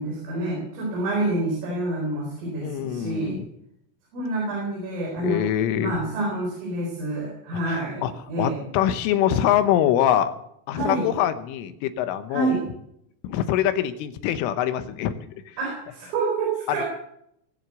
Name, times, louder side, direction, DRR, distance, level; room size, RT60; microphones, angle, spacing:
voice 1, 0.0-3.4 4.1-5.4 5.8-8.6 10.7-11.1 12.3-12.6 15.6-16.9, right 2 dB, 90° right, -2 dB, 6.8 m, -27 dB
voice 2, 2.6-3.5 5.2-5.9 7.7-8.1 8.4-10.4 10.7-12.6 13.2-15.1, left 11 dB, 85° left, 10 dB, 3.4 m, -24 dB
21.0 x 7.3 x 8.0 m, 0.74 s
omnidirectional pair, 5.7 m